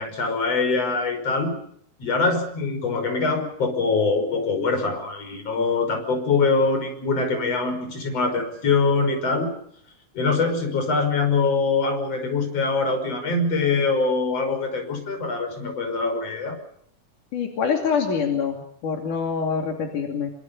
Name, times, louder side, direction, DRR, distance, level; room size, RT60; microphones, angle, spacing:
voice 1, 0.0-1.5 2.0-9.5 10.1-16.6, left 4 dB, 50° left, 5 dB, 6.6 m, -23 dB
voice 2, 17.3-20.3, left 6 dB, 80° left, 3 dB, 4.2 m, -25 dB
26.5 x 26.5 x 5.5 m, 0.66 s
omnidirectional pair, 3.6 m